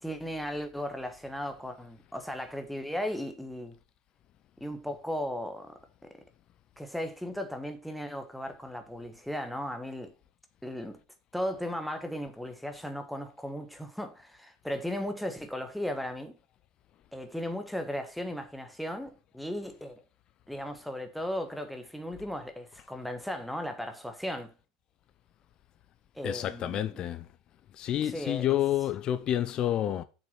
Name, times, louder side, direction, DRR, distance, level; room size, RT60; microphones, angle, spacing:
voice 1, 0.0-3.8 4.6-6.1 6.8-10.1 10.6-11.0 11.3-16.4 17.1-20.0 20.5-24.5 26.1-27.0 28.1-28.6, equal, ahead, 1.4 m, -36 dB
voice 2, 26.2-27.3 27.7-30.0, left 12 dB, 35° left, 0.7 m, -29 dB
7.3 x 6.0 x 5.8 m
figure-of-eight pair, 85°, 2 cm